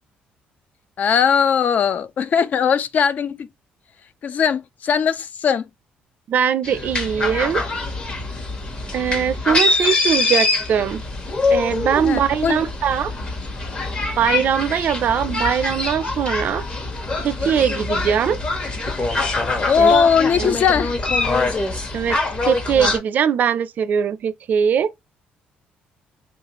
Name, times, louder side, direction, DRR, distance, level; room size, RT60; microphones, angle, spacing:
voice 1, 1.0-3.5 4.2-5.7 12.0-12.6 19.7-21.0, left 7 dB, 50° left, 0.4 m, -19 dB
voice 2, 6.3-7.6 8.9-11.0 11.5-13.1 14.2-16.6 17.2-18.4 19.8-19.9 20.4-20.6 21.9-22.2 22.4-24.9, right 8 dB, 55° right, 0.4 m, -21 dB
sound 1, 6.6-23.0, left 3 dB, 35° left, 1.1 m, -24 dB
3.2 x 2.5 x 2.9 m
cardioid pair, 100°, 3 cm